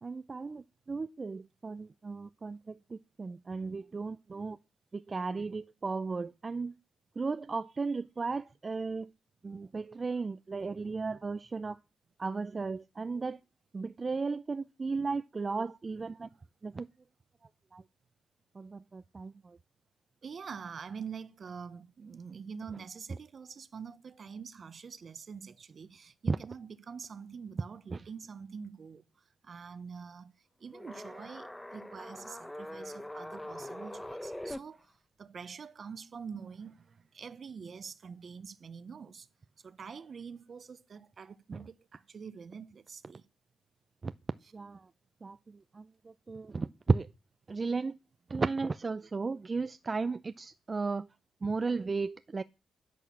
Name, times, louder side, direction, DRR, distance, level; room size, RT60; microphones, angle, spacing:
voice 1, 0.0-4.6 4.9-6.8 7.2-9.1 9.4-11.8 12.2-13.4 13.7-16.3 16.6-16.9 17.7-17.8 18.5-19.6 26.3-26.4 27.9-28.0 44.0-44.1 44.5-44.9 45.2-47.1 47.5-48.0 48.3-51.1 51.4-52.4, right 4 dB, 35° right, 0.6 m, -35 dB
voice 2, 20.2-29.0 29.4-30.3 30.6-34.9 35.2-39.3 39.6-43.3, right 6 dB, 55° right, 1.2 m, -45 dB
sound 1, 30.7-34.6, left 1 dB, 10° left, 1.2 m, -43 dB
10.5 x 9.1 x 7.4 m
cardioid pair, 70°, 0 cm